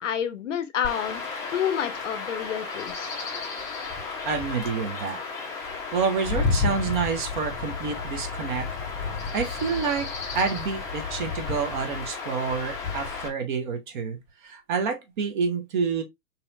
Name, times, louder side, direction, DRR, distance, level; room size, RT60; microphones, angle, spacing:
voice 1, 0.0-1.2 1.5-3.1, left 9 dB, 50° left, 0.7 m, -29 dB
Chirp tweet / Wind / Stream, 0.8-13.3, left 4 dB, 10° left, 0.5 m, -32 dB
voice 2, 4.2-5.2 5.9-8.7 9.3-10.1 10.3-16.0, right 5 dB, 30° right, 0.6 m, -28 dB
4.1 x 2.8 x 2.4 m
figure-of-eight pair, 110°, 47 cm